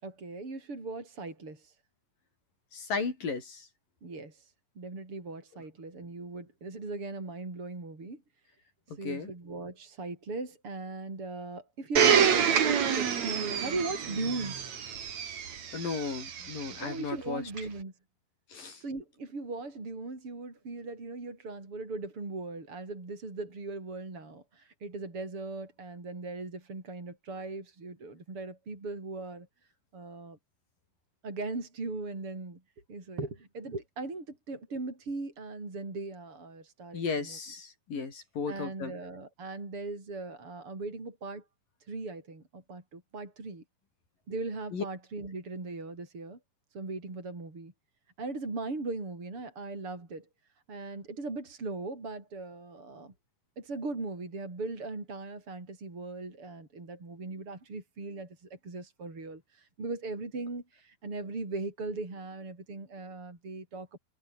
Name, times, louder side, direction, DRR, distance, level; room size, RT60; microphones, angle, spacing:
voice 1, 0.0-1.7 4.0-8.2 9.0-14.6 16.8-17.9 18.8-29.5 29.9-30.4 31.2-32.6 32.9-37.4 38.5-41.4 41.9-43.6 44.3-46.4 46.7-47.7 48.2-50.3 50.7-53.1 53.6-64.0, right 3 dB, 40° right, 7.4 m, -39 dB
voice 2, 2.7-3.7 9.0-9.3 15.7-17.4 18.5-18.8 36.9-38.9 44.7-44.8, left 5 dB, 85° left, 7.3 m, -35 dB
Domestic sounds home sounds, 12.0-16.8 17.6-17.7, right 7 dB, 55° right, 3.5 m, -27 dB
omnidirectional pair, 3.8 m